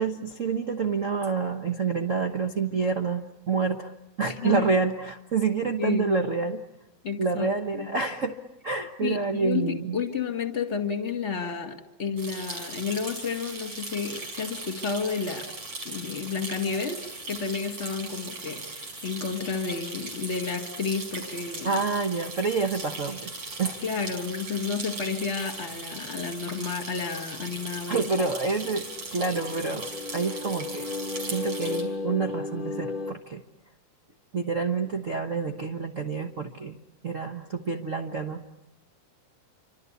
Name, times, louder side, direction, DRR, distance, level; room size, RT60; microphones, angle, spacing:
voice 1, 0.0-3.9 4.2-6.6 7.2-8.3 8.6-10.0 21.6-23.3 23.6-23.8 27.9-28.9 29.1-29.9 30.1-30.9 31.3-33.4 34.3-36.8 37.0-38.4, right 4 dB, 70° right, 5 dB, 0.7 m, -28 dB
voice 2, 4.3-4.7 5.8-6.1 7.0-7.9 9.0-15.5 15.8-21.7 23.8-28.3, left 5 dB, 25° left, 7 dB, 1.9 m, -31 dB
sound 1, 12.2-31.8, right 2 dB, 50° right, 5.8 m, -39 dB
sound 2, 28.3-33.1, left 3 dB, 50° left, 0.6 m, -35 dB
28.0 x 25.0 x 8.3 m, 0.87 s
omnidirectional pair, 3.3 m